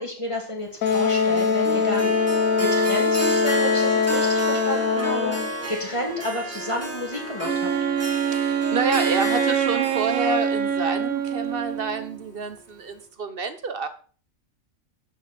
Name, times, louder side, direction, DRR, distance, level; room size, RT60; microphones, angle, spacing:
voice 1, 0.0-2.3 2.6-7.7, left 1 dB, 20° left, 0 dB, 2.7 m, -31 dB
Wind instrument woodwind instrument, 0.8-5.5, left 5 dB, 85° left, 1.3 m, -22 dB
Harp, 0.8-12.1, right 1 dB, 10° right, 2.1 m, -31 dB
Wind instrument woodwind instrument 2, 7.4-12.2, right 8 dB, 80° right, 1.3 m, -25 dB
voice 2, 8.2-13.9, right 4 dB, 45° right, 10 dB, 1.2 m, -28 dB
12.0 x 7.2 x 4.4 m, 0.40 s
omnidirectional pair, 1.4 m